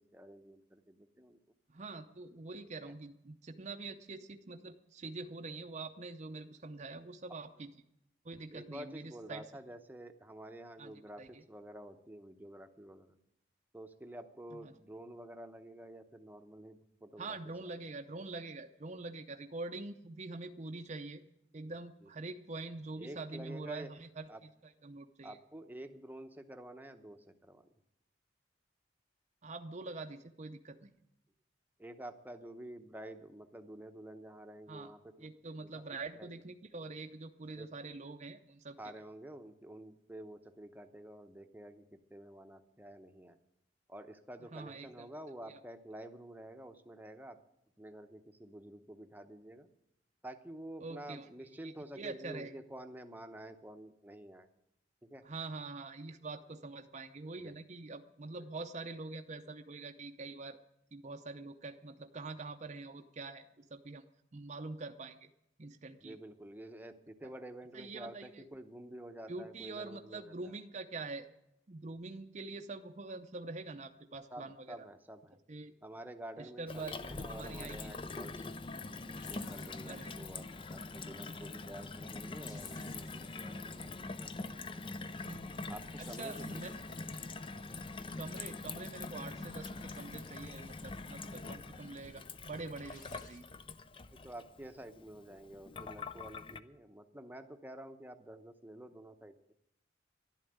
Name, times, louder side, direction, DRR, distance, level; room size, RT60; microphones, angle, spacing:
voice 1, 0.0-1.4 2.8-2.9 8.5-13.2 13.7-17.7 22.0-22.1 23.0-23.9 24.3-24.4 25.2-27.7 31.8-35.8 36.2-36.3 37.5-37.7 38.8-43.4 43.9-47.4 47.8-49.7 50.2-54.5 55.0-55.2 57.4-57.5 66.0-70.3 74.3-75.4 75.8-78.6 79.3-85.1 85.7-86.3 94.1-99.3, right 1 dB, 10° right, 7 dB, 0.8 m, -49 dB
voice 2, 1.7-7.7 8.2-9.4 10.8-11.4 14.5-14.7 17.2-21.2 21.5-25.4 29.4-30.9 34.7-34.9 35.2-38.8 44.5-45.1 45.5-45.6 50.8-52.5 55.2-60.6 60.9-63.5 63.7-65.3 65.6-66.2 67.7-68.5 69.3-71.3 71.7-74.9 75.5-75.7 76.4-77.9 79.8-80.1 85.2-85.6 86.0-86.7 88.2-93.4, right 3 dB, 35° right, 5 dB, 0.6 m, -45 dB
Gurgling / Water tap faucet / Sink (filling or washing), 76.7-96.6, left 3 dB, 25° left, 0.5 m, -44 dB
sound 1, 79.1-80.4 82.2-83.8 85.6-87.2 89.0-90.7 92.5-93.4, left 5 dB, 45° left, 1.5 m, -58 dB
11.5 x 11.5 x 8.7 m, 0.82 s
head